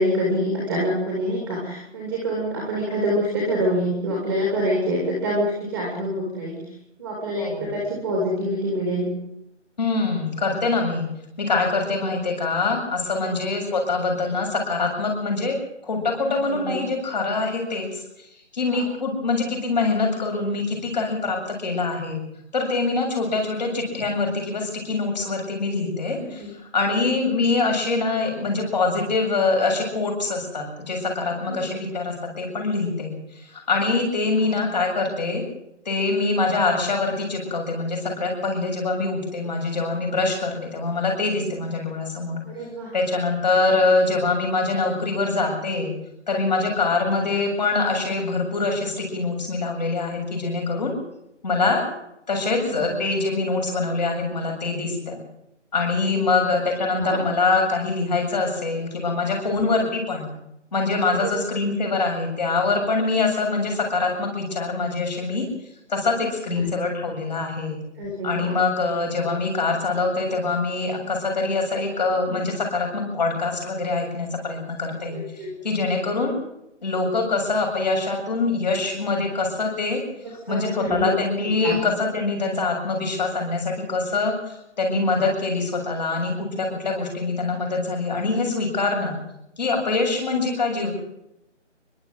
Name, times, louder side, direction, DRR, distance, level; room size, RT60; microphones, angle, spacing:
voice 1, 0.0-6.6 7.0-9.1 13.2-13.4 16.2-16.8 18.7-18.8 26.2-26.5 26.9-27.1 31.5-31.6 34.4-34.6 41.4-41.5 42.4-42.9 52.6-52.9 56.1-56.3 57.0-57.2 59.5-59.6 61.1-61.3 66.5-66.7 68.0-68.6 75.1-75.5 80.2-81.1 81.6-81.8, equal, 5° right, -3 dB, 2.6 m, -26 dB
voice 2, 7.4-7.7 9.8-11.1 11.4-15.6 15.8-18.0 18.5-22.2 22.5-26.4 26.7-33.1 33.4-35.4 35.9-42.4 42.9-45.9 46.3-50.9 51.4-51.8 52.3-55.2 55.7-60.3 60.7-65.4 65.9-67.8 68.2-75.2 75.6-76.4 76.8-80.0 80.5-84.3 84.8-89.2 89.6-90.9, left 3 dB, 35° left, 1 dB, 7.5 m, -24 dB
29.5 x 12.0 x 7.9 m, 0.82 s
figure-of-eight pair, 170°, 37 cm